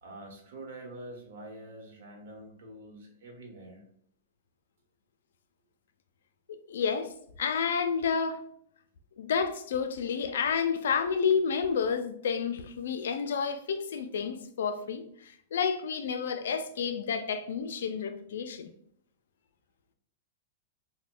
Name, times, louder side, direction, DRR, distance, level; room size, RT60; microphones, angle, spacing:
voice 1, 0.0-3.8, right 1 dB, 60° right, 0.9 m, -46 dB
voice 2, 6.5-7.1 7.4-8.4 9.2-18.7, left 6 dB, 85° left, 0.4 m, -30 dB
2.9 x 2.1 x 3.7 m
supercardioid pair, 180°, 0 cm